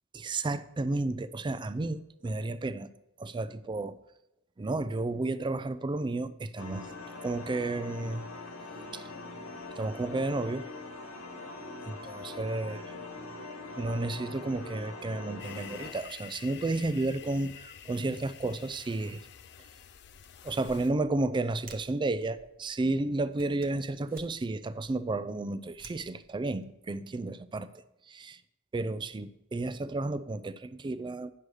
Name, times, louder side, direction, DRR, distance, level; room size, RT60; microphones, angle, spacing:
voice 1, 0.1-2.9 3.2-3.9 4.6-6.9 7.2-8.3 8.9-9.1 9.8-10.7 11.9-12.8 13.8-19.2 20.4-27.7 28.1-28.4 28.7-31.3, right 2 dB, 20° right, 14 dB, 0.4 m, -32 dB
sound 1, 6.6-15.9, left 3 dB, 90° left, 1.5 m, -43 dB
sound 2, 15.4-20.9, left 9 dB, 55° left, 0.5 m, -49 dB
sound 3, 20.0-26.6, right 3 dB, 40° right, 0.9 m, -55 dB
9.9 x 6.3 x 4.8 m, 0.88 s
head